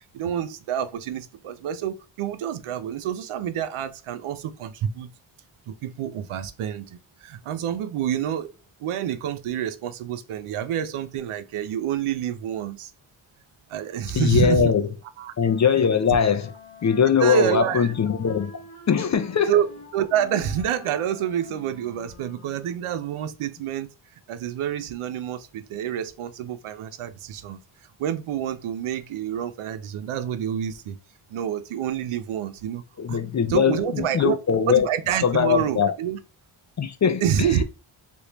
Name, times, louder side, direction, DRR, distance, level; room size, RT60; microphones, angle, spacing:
voice 1, 0.1-5.1 5.7-8.5 8.8-12.9 13.7-14.7 15.2-15.3 15.7-15.8 17.2-17.9 19.5-19.7 19.9-23.9 24.3-27.6 28.0-31.0 31.3-32.8 33.1-33.2 33.5-34.4 34.7-36.2 37.2-37.6, right 9 dB, 85° right, 0.6 m, -27 dB
voice 2, 14.1-14.8 15.4-16.5 16.8-18.5 18.9-19.5 33.0-34.9 35.2-35.9 36.8-37.2, left 7 dB, 35° left, 0.4 m, -21 dB
Wind instrument woodwind instrument, 15.4-22.9, left 5 dB, 80° left, 1.0 m, -46 dB
3.3 x 2.6 x 2.9 m
wide cardioid pair, 85°, 49 cm